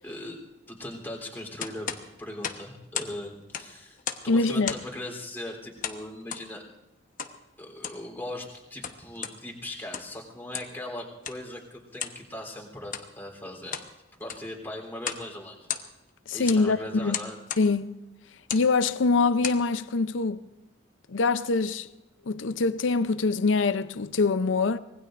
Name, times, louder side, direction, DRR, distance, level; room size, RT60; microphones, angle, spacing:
voice 1, 0.0-0.4 0.7-6.6 7.6-13.8 14.2-15.7 16.3-17.4, left 1 dB, 10° left, 3.5 m, -39 dB
sound 1, 1.6-3.2 3.4-4.3 4.6-5.0 5.8-6.5 7.2-7.4 7.7-8.1 8.6-9.4 9.8-10.2 10.5-10.8 11.2-11.4 12.0-12.2 12.8-13.1 13.5-13.9 14.2-14.5 15.0-15.3 15.5-16.1 16.5-16.7 17.1-17.7 18.4-18.7 19.2-19.6, left 8 dB, 45° left, 1.0 m, -35 dB
voice 2, 4.3-4.7 16.3-17.2 17.6-17.9 18.5-20.4 21.1-21.9 22.3-24.8, left 3 dB, 85° left, 0.6 m, -24 dB
25.0 x 20.0 x 2.6 m
head